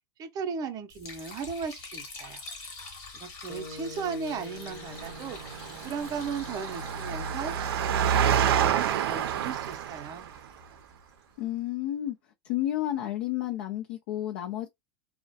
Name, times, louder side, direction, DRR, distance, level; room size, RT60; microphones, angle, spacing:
voice 1, 0.2-2.4 3.1-5.4 5.8-10.3, right 6 dB, 30° right, 0.5 m, -36 dB
Liquid, 0.9-11.1, left 4 dB, 45° left, 1.2 m, -47 dB
sound 1, 3.5-7.9, left 3 dB, 10° left, 0.7 m, -47 dB
Engine, 4.7-10.4, right 9 dB, 90° right, 0.4 m, -28 dB
voice 2, 11.4-12.2 12.4-14.7, left 13 dB, 70° left, 0.5 m, -31 dB
2.3 x 2.1 x 2.6 m
supercardioid pair, 130°, 12 cm